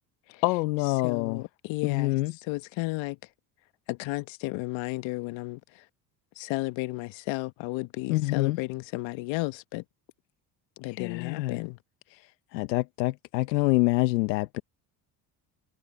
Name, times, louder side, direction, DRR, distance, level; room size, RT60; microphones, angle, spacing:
voice 1, 0.4-1.4 1.8-2.3 8.1-8.6 10.9-11.6 12.5-14.6, left 20 dB, 85° left, 1.1 m, -26 dB
voice 2, 1.0-2.2 2.5-3.2 3.9-5.6 6.4-9.8 10.8-11.8, left 21 dB, 65° left, 1.3 m, -33 dB
hypercardioid pair, 75°, 48 cm